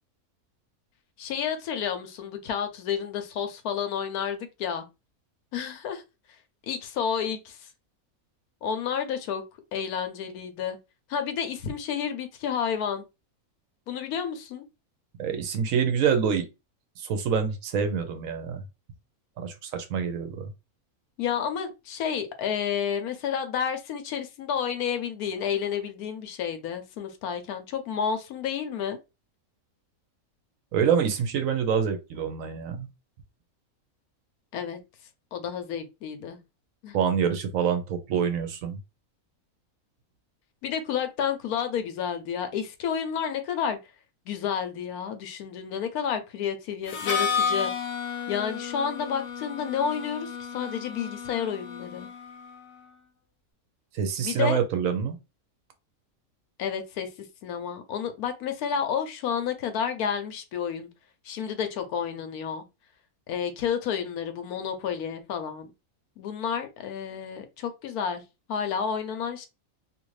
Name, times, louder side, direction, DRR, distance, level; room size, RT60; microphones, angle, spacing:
voice 1, 1.2-4.9 5.5-6.0 6.7-7.7 8.6-9.4 9.7-10.8 11.1-13.0 13.9-14.6 21.2-29.0 34.5-34.8 35.3-36.4 36.8-37.0 40.6-43.8 44.3-47.7 48.3-52.1 54.2-54.6 56.6-57.1 57.4-60.9 61.2-62.6 63.3-65.7 66.2-68.2 68.5-69.5, left 7 dB, 85° left, 1.1 m, -30 dB
voice 2, 15.2-16.5 17.0-18.6 19.4-20.5 30.7-32.9 36.9-38.8 53.9-55.2, right 7 dB, 70° right, 1.0 m, -26 dB
Harmonica, 46.9-52.6, left 6 dB, 60° left, 0.9 m, -32 dB
2.7 x 2.5 x 3.1 m
omnidirectional pair, 1.5 m